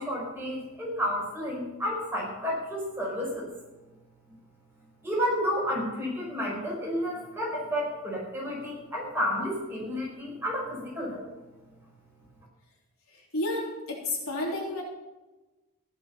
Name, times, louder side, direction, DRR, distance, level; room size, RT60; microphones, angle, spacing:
voice 1, 0.0-3.5 5.0-11.2, equal, 10° right, -4 dB, 4.9 m, -31 dB
voice 2, 13.1-14.8, left 2 dB, 75° left, -2 dB, 3.6 m, -31 dB
15.0 x 11.0 x 5.6 m, 1.1 s
head